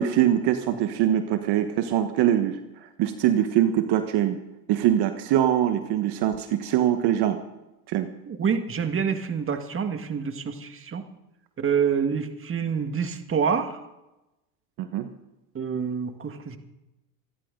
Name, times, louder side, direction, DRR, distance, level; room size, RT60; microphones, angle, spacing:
voice 1, 0.0-4.4 4.7-7.4 7.9-8.1 14.8-15.1, right 11 dB, 50° right, 8 dB, 1.4 m, -23 dB
voice 2, 8.3-11.0 11.6-13.8 15.5-16.6, right 6 dB, 25° right, 7 dB, 1.8 m, -27 dB
27.0 x 11.5 x 3.9 m, 0.96 s
supercardioid pair, 100°, 49 cm